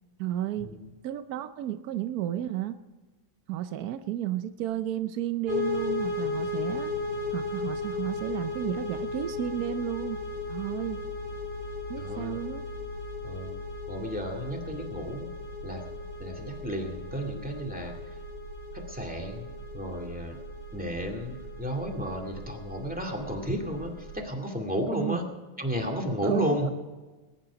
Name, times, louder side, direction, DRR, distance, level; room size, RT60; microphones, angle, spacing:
voice 1, 0.2-0.7 1.0-2.7 3.5-6.9 7.3-10.2 10.5-11.0 11.9-12.6 24.9-25.2 26.2-26.7, right 12 dB, 70° right, 10 dB, 0.9 m, -32 dB
sound 1, 5.5-24.2, left 3 dB, 40° right, 6.0 m, -36 dB
voice 2, 12.0-12.4 13.2-13.6 13.9-15.3 15.6-15.8 16.2-17.9 18.7-19.5 19.7-20.4 20.7-25.2 25.6-26.7, equal, 5° right, 1 dB, 2.0 m, -33 dB
20.5 x 11.0 x 5.0 m, 1.3 s
omnidirectional pair, 2.2 m